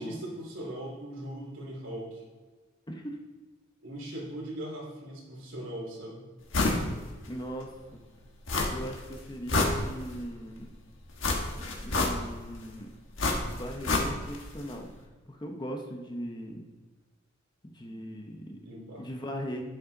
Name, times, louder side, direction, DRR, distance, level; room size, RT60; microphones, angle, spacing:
voice 1, 0.0-2.2 3.8-6.3 18.6-19.0, right 1 dB, 70° right, -2 dB, 2.8 m, -39 dB
voice 2, 2.9-3.2 7.3-8.0 8.7-10.7 11.8-12.9 13.6-14.9 15.3-16.7 17.7-18.6 19.0-19.6, equal, 20° left, 3 dB, 0.8 m, -39 dB
sound 1, 6.5-6.9 7.2-7.3 8.5-9.0 9.3-10.3 11.2-12.5 13.2-14.4 14.7-14.8, left 2 dB, 70° left, 1.4 m, -28 dB
9.6 x 8.4 x 3.9 m, 1.4 s
head